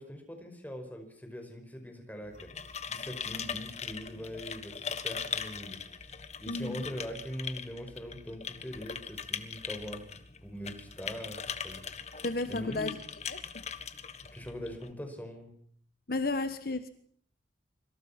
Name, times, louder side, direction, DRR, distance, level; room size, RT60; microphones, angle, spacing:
voice 1, 0.0-10.0 10.4-11.8 12.1-13.0 14.3-15.5, equal, 10° left, 5 dB, 5.2 m, -42 dB
sound 1, 2.2-14.9, left 6 dB, 35° left, 1.5 m, -40 dB
voice 2, 6.5-6.8 12.2-13.0 13.3-13.7 16.1-16.9, left 2 dB, 55° left, 10 dB, 1.3 m, -33 dB
26.0 x 26.0 x 5.9 m, 0.62 s
head